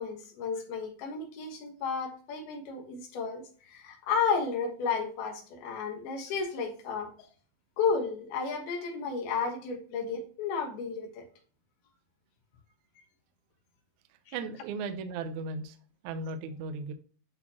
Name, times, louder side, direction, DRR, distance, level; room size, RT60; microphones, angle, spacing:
voice 1, 0.0-7.3 7.8-11.2 14.3-14.4, left 5 dB, 90° left, 3 dB, 3.4 m, -32 dB
voice 2, 14.3-15.8 16.0-16.9, right 4 dB, 75° right, 8 dB, 1.8 m, -36 dB
10.5 x 4.2 x 2.9 m, 0.41 s
omnidirectional pair, 4.2 m